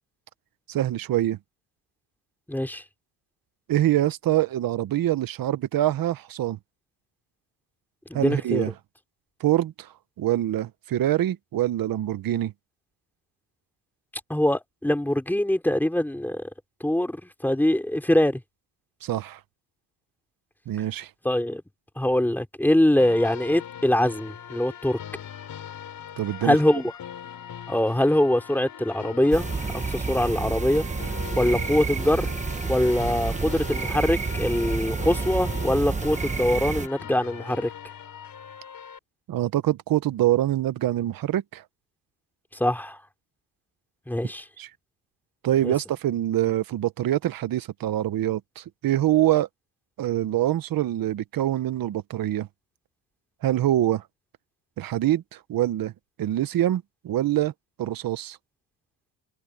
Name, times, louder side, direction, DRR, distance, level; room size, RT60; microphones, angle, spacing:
voice 1, 0.7-1.4 3.7-6.6 8.1-8.7 9.4-9.9 10.2-12.5 19.0-19.4 20.7-21.1 26.2-26.6 39.3-41.6 44.6-44.7 45.4-49.5 50.0-52.5 53.4-54.0 54.8-55.9 56.2-57.5 57.8-58.4, right 13 dB, 45° right, 0.9 m, -25 dB
voice 2, 2.5-2.8 8.1-8.6 14.3-16.5 16.8-18.4 21.2-21.6 22.0-25.0 26.4-26.9 27.7-30.9 31.3-32.3 32.7-37.7 42.5-43.0 44.1-44.4 45.6-45.7, left 1 dB, 5° left, 3.2 m, -23 dB
sound 1, 23.0-39.0, left 9 dB, 45° left, 4.0 m, -41 dB
sound 2, 29.3-36.9, right 4 dB, 15° right, 1.1 m, -29 dB
cardioid pair, 145°, 48 cm